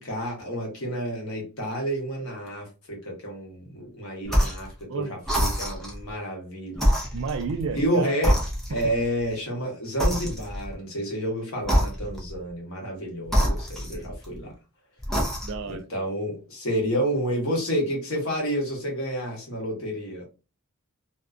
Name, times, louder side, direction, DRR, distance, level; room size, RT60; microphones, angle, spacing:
voice 1, 0.0-6.9 7.7-8.4 8.7-14.5 15.7-20.3, equal, 65° left, 1.1 m, -30 dB
sound 1, 4.3-4.7 5.2-6.0 6.7-7.9 8.2-9.0 10.0-10.7 11.6-12.3 13.3-14.4 15.0-15.7, equal, ahead, 0.5 m, -25 dB
voice 2, 7.1-8.2 15.4-15.9, right 5 dB, 60° right, 0.4 m, -31 dB
2.6 x 2.2 x 2.3 m
head